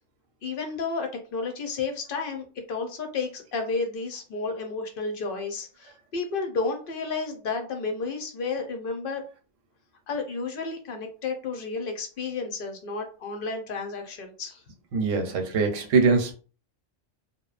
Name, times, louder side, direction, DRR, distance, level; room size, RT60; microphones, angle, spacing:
voice 1, 0.4-9.2 10.1-14.6, left 4 dB, 60° left, 5 dB, 0.6 m, -32 dB
voice 2, 14.9-16.3, right 4 dB, 85° right, 5 dB, 1.0 m, -22 dB
2.9 x 2.0 x 2.3 m, 0.36 s
omnidirectional pair, 1.2 m